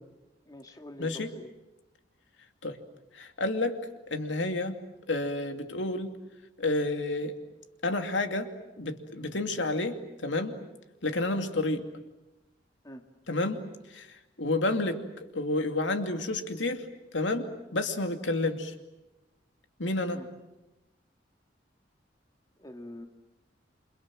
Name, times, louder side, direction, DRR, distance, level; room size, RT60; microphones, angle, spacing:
voice 1, 0.5-1.5 12.8-13.0 20.1-20.3 22.6-23.1, left 1 dB, 20° left, 5 dB, 2.2 m, -45 dB
voice 2, 1.0-1.3 2.6-2.8 3.1-3.8 4.1-4.8 5.1-6.1 6.6-7.4 7.8-8.5 8.8-10.6 11.0-11.8 13.3-13.6 13.9-15.0 15.3-16.9 17.1-18.7 19.8-20.2, left 2 dB, 85° left, 6 dB, 2.6 m, -30 dB
29.0 x 26.5 x 7.7 m, 1.0 s
head